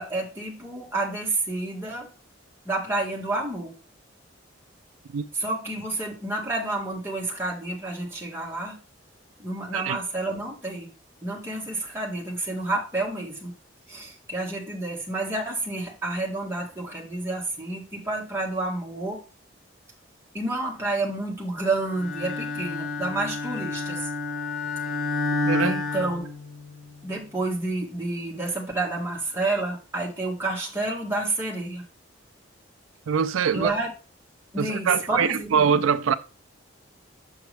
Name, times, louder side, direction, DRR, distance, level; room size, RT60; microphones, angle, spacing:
voice 1, 0.0-2.1 2.6-3.7 5.3-8.8 9.4-10.9 11.2-13.5 13.9-19.2 20.3-24.1 25.6-26.3 27.0-31.8 33.5-33.9 34.5-35.6, right 2 dB, 10° right, 1.6 m, -29 dB
Bowed string instrument, 21.9-26.9, left 2 dB, 80° left, 1.8 m, -29 dB
voice 2, 33.1-33.7 34.6-36.1, right 6 dB, 85° right, 0.4 m, -23 dB
6.4 x 5.9 x 3.3 m
head